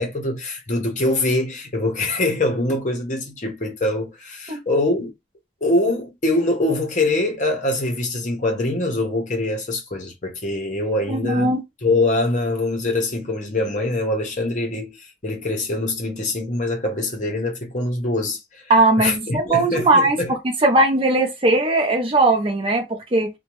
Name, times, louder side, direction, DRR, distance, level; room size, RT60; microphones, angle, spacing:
voice 1, 0.0-5.1 5.6-11.5 11.8-18.6 19.0-20.3, left 2 dB, 40° left, 0.8 m, -23 dB
voice 2, 11.1-11.6 18.7-23.3, right 2 dB, 30° right, 0.5 m, -19 dB
2.7 x 2.1 x 2.9 m
head